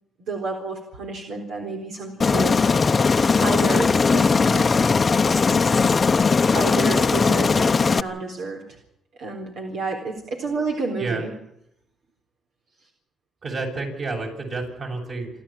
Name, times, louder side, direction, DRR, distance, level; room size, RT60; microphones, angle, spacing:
voice 1, 0.2-4.9 5.8-6.0 6.5-8.8 9.2-11.3, right 4 dB, 75° right, 1 dB, 3.9 m, -31 dB
Aircraft, 2.2-8.0, left 4 dB, 35° left, 0.8 m, -19 dB
voice 2, 13.4-15.3, right 3 dB, 50° right, 2 dB, 7.7 m, -29 dB
27.5 x 13.0 x 9.1 m, 0.78 s
cardioid pair, 90°, 0 cm